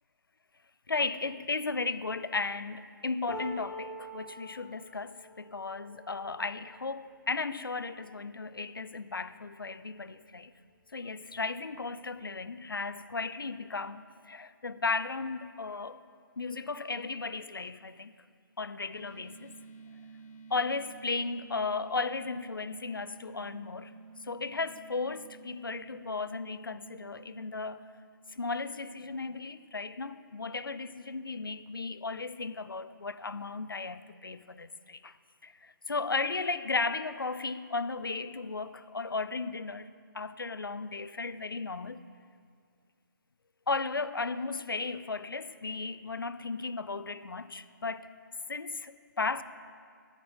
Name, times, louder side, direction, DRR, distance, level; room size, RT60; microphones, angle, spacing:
voice 1, 0.9-10.5 10.9-16.0 16.4-18.1 18.6-19.5 20.5-23.9 24.2-27.8 28.3-35.1 35.4-42.0 43.7-48.1 48.5-49.4, left 4 dB, 85° left, 0.5 m, -35 dB
sound 1, 3.3-9.4 10.0-10.2 10.5-11.3 12.2-12.3, equal, 5° left, 2.0 m, -47 dB
sound 2, 18.9-28.7, right 4 dB, 40° left, 1.2 m, -52 dB
9.2 x 8.7 x 6.3 m
figure-of-eight pair, 135°, 11 cm